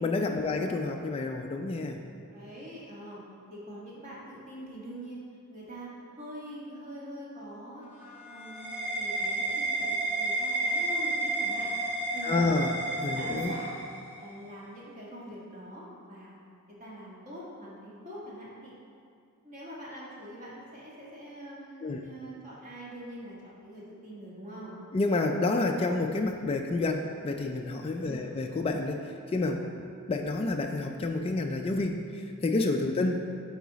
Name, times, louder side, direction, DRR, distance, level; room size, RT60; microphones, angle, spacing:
voice 1, 0.0-2.0 12.2-12.8 13.0-13.5 21.8-22.0 24.9-29.6 30.1-33.2, left 2 dB, 25° left, 3 dB, 0.3 m, -29 dB
voice 2, 2.3-3.2 3.5-5.2 5.5-5.9 6.2-7.8 8.2-11.7 12.1-12.6 12.9-13.8 14.2-16.4 16.8-18.7 19.4-24.8 28.0-28.4 32.9-33.0, equal, 35° right, -7 dB, 1.6 m, -44 dB
sound 1, 7.8-14.3, right 2 dB, 10° right, 1.4 m, -31 dB
9.4 x 4.0 x 4.0 m, 2.4 s
head